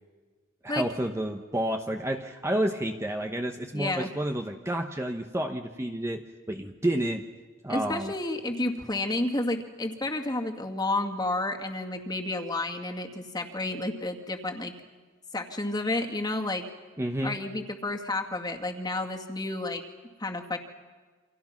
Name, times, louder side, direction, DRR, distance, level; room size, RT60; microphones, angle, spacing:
voice 1, 0.6-7.3 7.6-8.1 17.0-17.4, right 1 dB, 15° right, 4 dB, 1.1 m, -30 dB
voice 2, 3.7-4.1 7.7-14.7 15.3-16.6 17.2-19.8 20.2-20.6, left 2 dB, 20° left, 3 dB, 2.2 m, -31 dB
29.0 x 26.5 x 6.0 m, 1.4 s
head